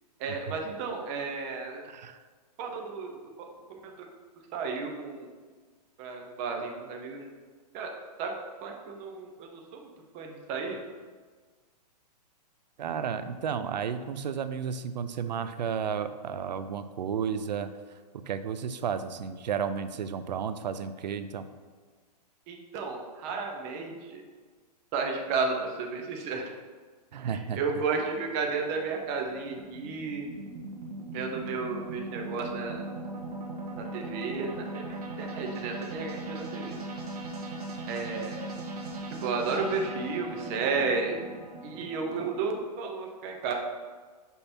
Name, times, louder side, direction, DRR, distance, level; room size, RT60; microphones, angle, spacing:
voice 1, 0.2-1.8 2.6-4.1 4.5-5.3 6.0-7.3 7.7-7.9 8.2-8.3 8.6-9.9 10.1-10.8 22.5-24.2 24.9-26.5 27.2-30.3 31.1-32.8 33.7-36.8 37.9-38.5 39.2-41.2 41.6-43.5, right 4 dB, 20° right, 2 dB, 0.5 m, -33 dB
voice 2, 1.8-2.2 12.8-17.7 18.3-21.5 27.1-27.6, right 7 dB, 85° right, 11 dB, 0.5 m, -32 dB
sound 1, 28.1-42.4, right 2 dB, 65° right, 1.5 m, -39 dB
5.7 x 5.4 x 4.2 m, 1.5 s
hypercardioid pair, 170°, 21 cm